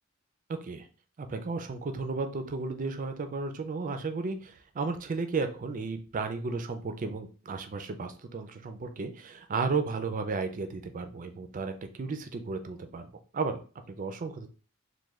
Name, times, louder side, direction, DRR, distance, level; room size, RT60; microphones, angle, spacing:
voice 1, 1.2-13.1 13.3-13.6 13.9-14.5, right 4 dB, 40° right, 7 dB, 0.4 m, -34 dB
3.1 x 2.2 x 3.5 m, 0.37 s
head